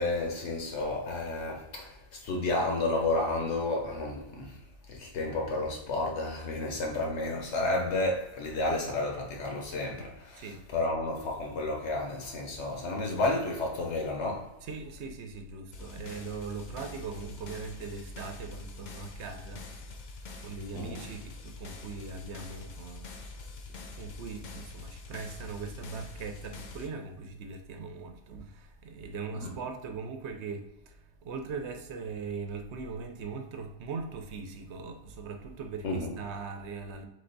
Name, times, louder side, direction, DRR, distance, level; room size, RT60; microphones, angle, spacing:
voice 1, 0.0-4.6 4.9-14.5 20.7-21.0 29.4-29.5 35.8-36.1, left 2 dB, 80° left, 1.1 m, -31 dB
voice 2, 10.3-10.7 14.6-23.1 23.8-37.0, right 4 dB, 75° right, 0.9 m, -40 dB
sound 1, 15.7-26.9, left 3 dB, 50° left, 0.6 m, -45 dB
3.8 x 3.3 x 3.9 m
omnidirectional pair, 1.2 m